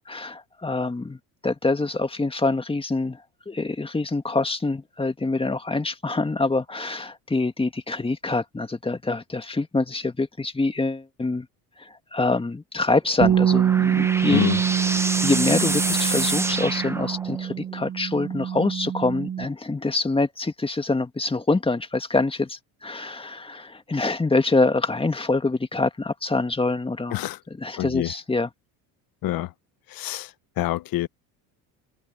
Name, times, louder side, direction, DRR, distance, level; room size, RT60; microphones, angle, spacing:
voice 1, 0.1-11.5 11.8-14.4 15.2-27.2 27.6-28.5, left 3 dB, 15° left, 1.9 m, -25 dB
sound 1, 13.0-17.6, right 2 dB, 5° right, 1.0 m, -28 dB
Bass guitar, 13.2-19.5, right 9 dB, 25° right, 0.4 m, -24 dB
voice 2, 14.3-14.6 27.1-27.4 27.8-28.1 29.2-29.5 29.9-31.1, left 14 dB, 60° left, 1.1 m, -26 dB
supercardioid pair, 100°, 39 cm